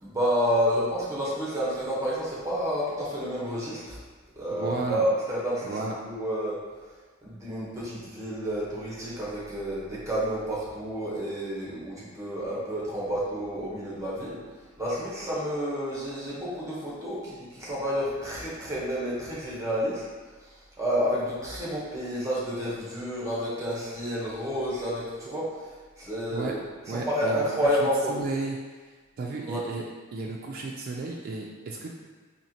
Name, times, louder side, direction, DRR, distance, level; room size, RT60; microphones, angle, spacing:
voice 1, 0.0-4.0 4.4-5.8 6.1-6.6 7.2-14.4 14.8-20.0 20.8-26.6 26.9-28.3 29.4-29.6, equal, 15° right, -6 dB, 0.8 m, -30 dB
voice 2, 4.5-5.0 5.6-5.9 26.3-26.5 26.9-27.5 28.1-28.6 29.2-29.8 30.1-31.9, right 3 dB, 45° right, -1 dB, 0.3 m, -33 dB
4.2 x 2.8 x 2.7 m, 1.4 s
head